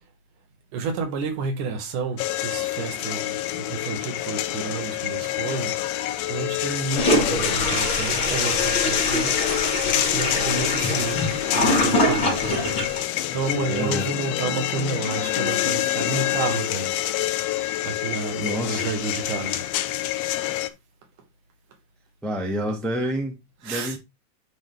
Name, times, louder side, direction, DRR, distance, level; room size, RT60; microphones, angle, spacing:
voice 1, 0.7-5.8 6.3-11.2 11.5-12.6 13.1-17.1 17.8-19.7 23.6-24.0, right 5 dB, 85° right, 3.1 m, -30 dB
sound 1, 2.2-20.7, left 14 dB, 80° left, 1.6 m, -27 dB
Toilet flush, 7.0-13.0, left 1 dB, 40° left, 2.5 m, -24 dB
voice 2, 13.7-14.1 18.4-18.9 22.2-24.0, equal, ahead, 0.6 m, -28 dB
10.0 x 3.9 x 3.3 m
omnidirectional pair, 3.5 m